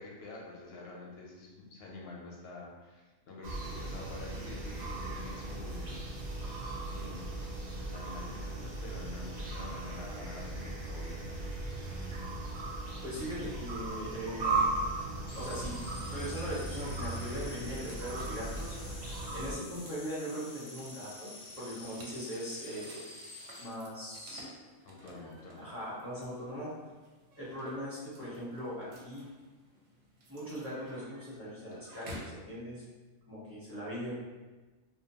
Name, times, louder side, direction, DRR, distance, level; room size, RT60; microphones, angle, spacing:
voice 1, 0.0-6.0 6.3-6.4 6.9-11.2 24.8-25.7, left 3 dB, 65° left, -2 dB, 0.7 m, -47 dB
sound 1, 3.4-19.5, right 2 dB, 85° right, 0.3 m, -37 dB
voice 2, 13.0-14.7 15.3-18.8 19.3-21.3 21.6-23.0 23.6-24.4 25.6-26.7 27.4-29.2 30.3-32.8 33.3-34.1, equal, 15° right, -10 dB, 0.6 m, -40 dB
sound 2, 15.3-23.6, left 2 dB, 85° left, 0.3 m, -49 dB
sound 3, 17.7-32.4, equal, 65° right, 0.8 m, -54 dB
2.5 x 2.2 x 2.7 m, 1.2 s
omnidirectional pair, 1.4 m